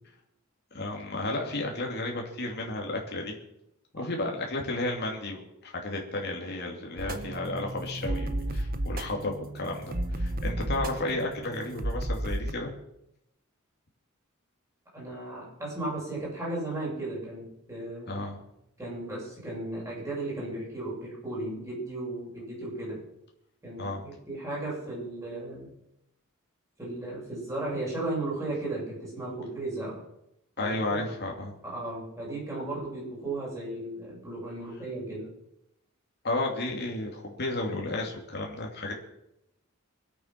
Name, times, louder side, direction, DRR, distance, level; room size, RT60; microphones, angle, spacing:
voice 1, 0.7-3.4 3.9-12.7 18.1-18.4 23.8-24.0 30.6-31.5 36.2-38.9, left 2 dB, 50° left, 0 dB, 2.8 m, -33 dB
sound 1, 7.0-12.5, right 1 dB, 45° right, 1.1 m, -33 dB
voice 2, 14.9-18.2 18.8-23.0 23.6-25.7 26.8-30.0 30.6-31.1 31.6-35.3, right 2 dB, 15° right, -5 dB, 7.8 m, -35 dB
24.5 x 8.5 x 6.0 m, 0.83 s
head